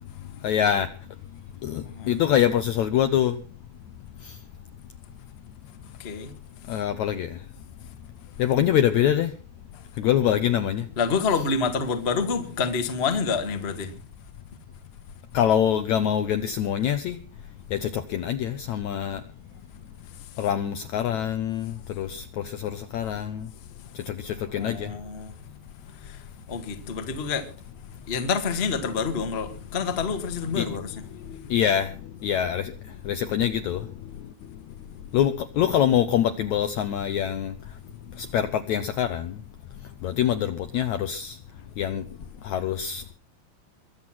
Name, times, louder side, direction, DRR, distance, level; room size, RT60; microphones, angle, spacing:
voice 1, 0.4-0.9 1.6-3.4 6.7-7.3 8.4-9.3 10.0-10.9 15.3-17.2 17.7-19.2 20.4-22.2 22.5-23.5 24.1-24.9 30.6-30.7 31.5-31.9 32.2-32.7 33.1-33.9 35.1-37.5 38.2-39.4 40.0-41.4 41.8-42.0 42.4-43.0, left 10 dB, 75° left, 1.8 m, -24 dB
voice 2, 1.8-2.1 6.0-6.3 6.7-6.8 9.7-9.8 11.0-13.9 20.2-20.4 24.5-25.3 25.9-27.5 27.9-31.0, left 5 dB, 35° left, 1.0 m, -28 dB
22.5 x 8.2 x 5.9 m
omnidirectional pair, 4.2 m